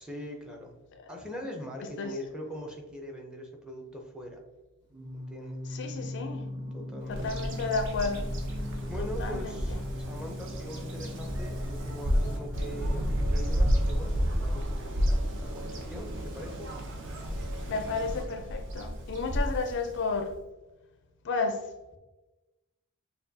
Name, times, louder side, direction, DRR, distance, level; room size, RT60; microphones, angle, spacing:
voice 1, 0.0-0.8 1.1-4.4 5.1-5.6 6.7-7.4 8.9-9.8 10.1-15.2 15.5-16.7, equal, 5° right, 1 dB, 0.5 m, -42 dB
Singing, 4.9-13.8, left 1 dB, 80° right, 1.2 m, -40 dB
voice 2, 5.7-6.5 7.1-8.3 9.2-9.8 17.7-20.3 21.2-21.7, left 4 dB, 55° left, 7 dB, 0.4 m, -32 dB
Bird vocalization bird call bird song, 7.1-20.4, equal, 55° right, 0.6 m, -31 dB
6.6 x 2.3 x 2.6 m, 1.1 s
head